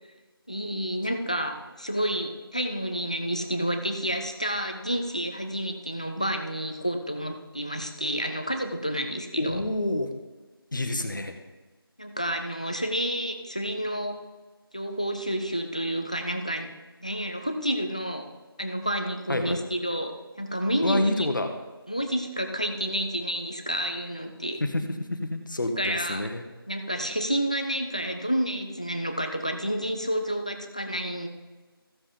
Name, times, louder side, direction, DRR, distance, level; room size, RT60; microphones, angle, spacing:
voice 1, 0.5-9.6 12.0-14.1 14.7-16.7 17.0-18.3 18.6-21.3 21.9-24.6 25.8-26.3 26.7-31.3, equal, 15° left, 5 dB, 0.4 m, -30 dB
voice 2, 9.4-10.1 10.7-11.3 19.3-19.6 20.8-21.5 24.6-26.4, left 1 dB, 55° left, 6 dB, 1.3 m, -28 dB
15.0 x 6.9 x 3.8 m, 1.3 s
figure-of-eight pair, 175°, 13 cm